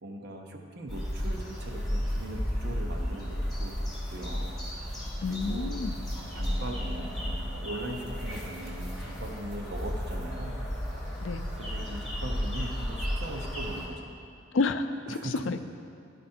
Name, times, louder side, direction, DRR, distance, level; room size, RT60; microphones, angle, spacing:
voice 1, 0.0-4.6 5.3-5.8 6.3-10.6 11.6-14.1 15.1-15.5, right 1 dB, 55° right, 2 dB, 0.8 m, -40 dB
sound 1, 0.9-13.9, equal, ahead, 2.1 m, -33 dB
voice 2, 5.2-6.2 11.2-11.4 14.5-15.2 15.5-15.6, left 3 dB, 80° left, 9 dB, 0.4 m, -30 dB
12.5 x 5.1 x 4.3 m, 2.4 s
head